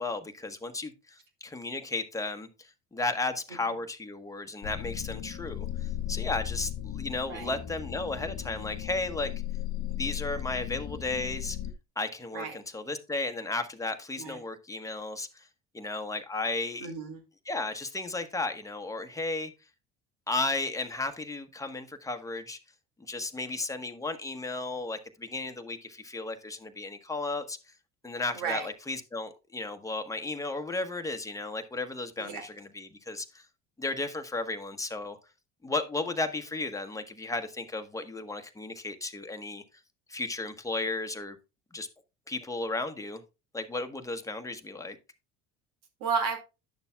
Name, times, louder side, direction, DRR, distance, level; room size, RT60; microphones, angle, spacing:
voice 1, 0.0-9.3 9.9-11.6 12.0-15.5 15.7-16.9 17.5-19.5 20.3-22.6 23.1-27.6 28.0-33.5 33.8-35.2 35.6-39.6 40.1-41.4 41.7-41.9 42.3-43.2 43.5-45.0, left 2 dB, 10° left, 1.2 m, -34 dB
sound 1, 4.6-11.7, left 11 dB, 60° left, 1.1 m, -36 dB
voice 2, 16.8-17.2 28.3-28.7 32.2-32.5 46.0-46.4, right 5 dB, 70° right, 2.3 m, -33 dB
10.5 x 6.7 x 2.3 m
hypercardioid pair, 75°, 33 cm